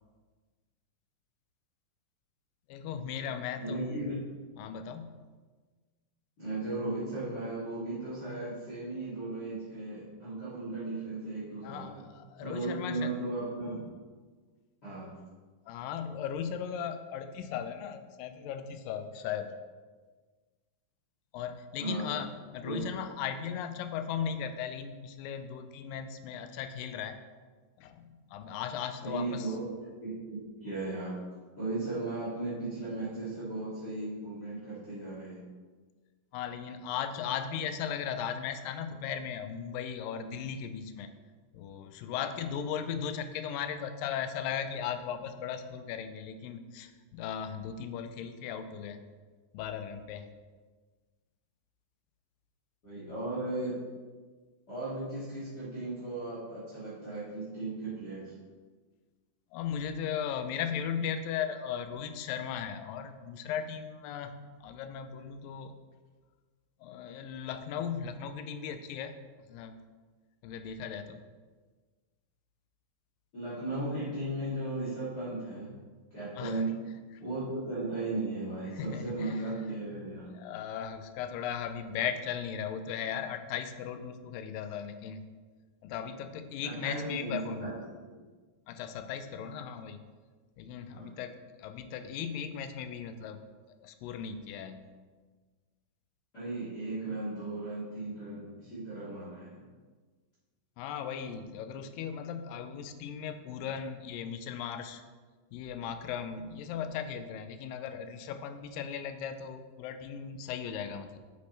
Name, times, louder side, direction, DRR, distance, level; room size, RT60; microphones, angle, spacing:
voice 1, 2.7-4.1 4.6-5.3 11.6-13.1 15.7-19.5 21.3-27.2 27.8-29.5 36.3-41.1 41.5-49.0 49.5-50.3 59.5-65.7 66.8-69.1 69.5-69.8 70.4-71.2 76.4-76.6 78.7-79.6 80.3-85.2 85.8-87.7 88.7-90.0 90.6-93.4 93.8-95.0 100.8-105.0 105.5-111.2, left 8 dB, 80° left, 9 dB, 2.2 m, -37 dB
voice 2, 3.6-4.2 6.4-11.9 12.4-13.8 14.8-15.2 21.8-22.1 22.6-22.8 29.0-31.1 31.6-35.4 52.8-53.8 54.7-58.3 73.3-75.8 76.1-76.7 77.2-80.3 86.6-87.9 90.9-91.1 96.3-99.7, right 2 dB, 30° left, -11 dB, 3.1 m, -36 dB
9.4 x 8.0 x 3.3 m, 1.4 s
omnidirectional pair, 4.0 m